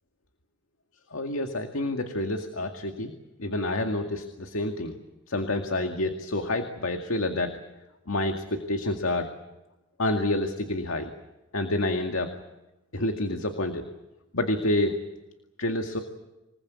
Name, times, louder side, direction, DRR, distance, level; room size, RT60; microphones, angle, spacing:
voice 1, 1.1-3.1 3.4-4.9 5.3-7.6 8.1-9.3 10.0-11.1 11.5-12.3 12.9-13.8 14.3-15.0 15.6-16.0, left 2 dB, 85° left, 5 dB, 2.1 m, -28 dB
27.0 x 19.5 x 8.4 m, 1.0 s
head